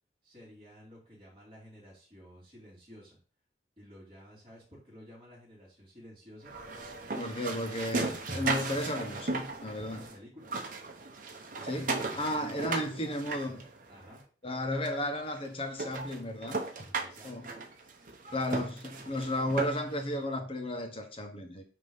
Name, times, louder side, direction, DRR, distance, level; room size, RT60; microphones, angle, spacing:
voice 1, 0.2-3.2 3.8-6.5 9.8-10.6 11.5-13.6 13.9-14.2 17.0-17.5 18.3-18.5, equal, 30° right, 3.3 m, -53 dB
sound 1, 6.4-10.1 10.4-14.2 14.8-14.9 15.4-15.5 15.8-20.0, right 3 dB, 45° right, 1.3 m, -36 dB
voice 2, 7.1-10.1 11.7-13.6 14.4-16.6 17.2-17.4 18.3-21.6, left 1 dB, 30° left, 1.3 m, -34 dB
9.0 x 3.3 x 5.6 m
head